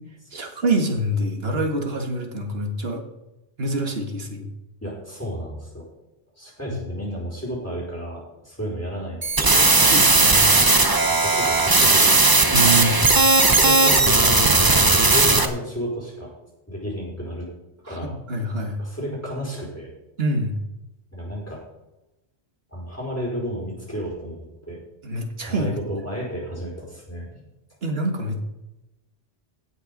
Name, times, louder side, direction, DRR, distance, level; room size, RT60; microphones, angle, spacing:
voice 1, 0.3-3.0 3.6-4.5 6.6-6.8 9.9-10.6 12.5-13.0 17.9-18.8 20.2-20.6 25.0-26.0 27.8-28.4, right 1 dB, 65° right, 3 dB, 2.1 m, -26 dB
voice 2, 4.8-5.9 6.4-9.7 11.1-12.1 13.1-14.6 15.0-16.3 16.7-17.5 17.9-18.1 18.8-19.9 21.1-21.6 22.7-24.8 25.5-27.4, equal, 15° left, -4 dB, 4.6 m, -32 dB
sound 1, 9.2-15.5, right 3 dB, 20° right, 0.8 m, -16 dB
17.0 x 6.7 x 5.3 m, 0.97 s
omnidirectional pair, 1.1 m